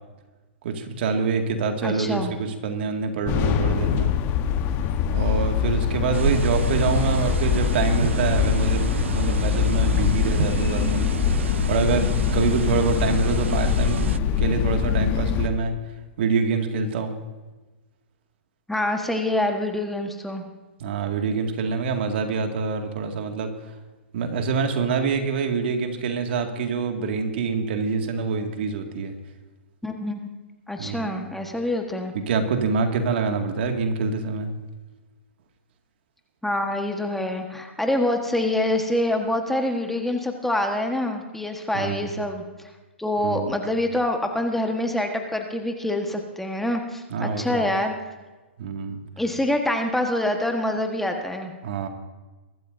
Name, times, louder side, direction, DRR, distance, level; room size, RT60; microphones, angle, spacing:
voice 1, 0.6-4.1 5.1-11.1 11.7-15.8 16.2-17.1 20.8-23.7 24.1-29.1 30.8-31.2 32.1-34.5 41.7-42.2 43.2-43.6 47.1-47.7 48.6-49.0 51.6-51.9, right 5 dB, 60° right, 5 dB, 2.1 m, -26 dB
voice 2, 1.8-2.3 18.7-20.4 29.8-30.3 30.7-32.1 36.4-42.4 43.0-47.9 49.2-51.5, left 1 dB, 5° left, 4 dB, 1.3 m, -26 dB
sound 1, 3.3-15.5, left 8 dB, 35° left, 1.1 m, -23 dB
sound 2, 6.1-14.2, right 8 dB, 80° right, 0.4 m, -30 dB
22.5 x 13.0 x 2.7 m, 1.2 s
hypercardioid pair, 130°, 6 cm